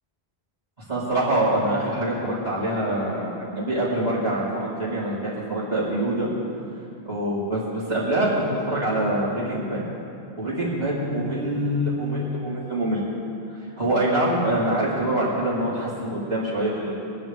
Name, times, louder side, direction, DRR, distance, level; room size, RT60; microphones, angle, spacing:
voice 1, 0.9-6.3 7.0-9.8 10.4-13.0 13.5-17.0, right 1 dB, 40° right, -9 dB, 4.3 m, -25 dB
24.0 x 11.0 x 3.6 m, 2.6 s
omnidirectional pair, 1.1 m